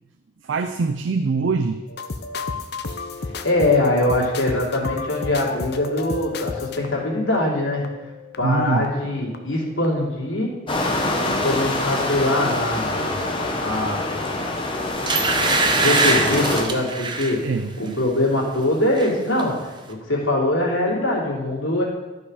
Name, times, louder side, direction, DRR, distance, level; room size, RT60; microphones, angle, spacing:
voice 1, 0.4-1.8 8.4-8.9 17.4-18.0, right 4 dB, 65° right, 8 dB, 0.4 m, -23 dB
sound 1, 1.9-9.6 9.8-10.2, left 5 dB, 50° left, 0.6 m, -33 dB
voice 2, 3.4-7.9 8.4-10.6 11.2-14.1 15.8-17.5 17.8-21.8, left 1 dB, 75° left, -4 dB, 2.9 m, -23 dB
sound 2, 10.7-16.6, left 2 dB, 25° left, 1.0 m, -25 dB
sound 3, 14.4-14.5 15.1-17.4 17.8-18.1 18.4-19.1 19.4-19.5, right 3 dB, 20° right, 0.6 m, -22 dB
12.0 x 5.5 x 4.9 m, 1.2 s
head